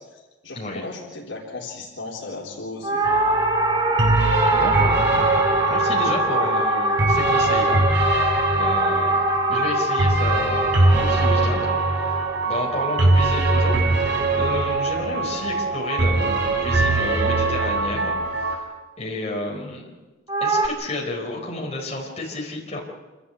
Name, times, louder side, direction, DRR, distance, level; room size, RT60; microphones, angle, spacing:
voice 1, 0.4-3.3, left 3 dB, 70° left, -2 dB, 3.8 m, -35 dB
sound 1, 2.8-13.3 20.3-20.7, right 1 dB, 20° right, 1.3 m, -23 dB
sound 2, 3.0-18.6, right 2 dB, 70° right, 4.3 m, -22 dB
voice 2, 4.5-9.2 9.5-11.7 12.5-18.6 19.0-19.9 20.4-22.8, left 2 dB, 30° left, -2 dB, 4.8 m, -31 dB
27.5 x 13.0 x 8.2 m, 1.2 s
head